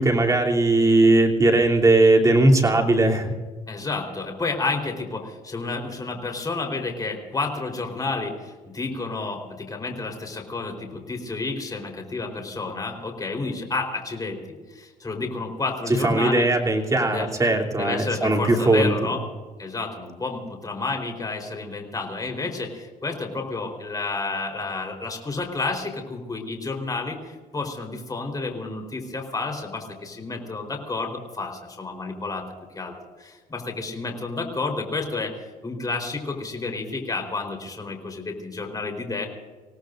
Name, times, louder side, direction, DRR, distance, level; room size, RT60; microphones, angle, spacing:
voice 1, 0.0-3.3 16.0-18.9, right 2 dB, 20° right, 0 dB, 3.1 m, -19 dB
voice 2, 3.7-5.2 5.5-8.3 8.8-9.4 9.7-10.7 11.1-14.3 15.0-16.5 17.1-17.3 17.7-19.2 19.6-20.4 20.6-22.7 23.0-27.1 27.5-31.1 31.4-31.5 31.8-32.4 32.8-32.9 33.5-35.3 35.6-39.3, left 3 dB, 20° left, 3 dB, 4.2 m, -30 dB
27.0 x 18.0 x 2.6 m, 1.4 s
cardioid pair, 110°, 17 cm